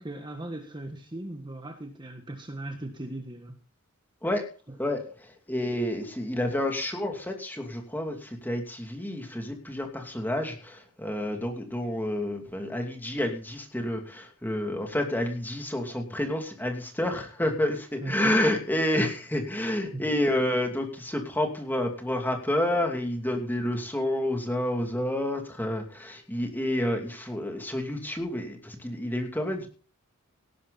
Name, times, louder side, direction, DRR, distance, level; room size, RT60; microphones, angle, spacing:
voice 1, 0.0-3.6 18.0-18.4 19.9-20.0, right 1 dB, 20° right, 4 dB, 1.5 m, -38 dB
voice 2, 4.8-29.7, left 1 dB, 10° left, 3 dB, 2.6 m, -29 dB
18.0 x 11.0 x 4.1 m, 0.39 s
head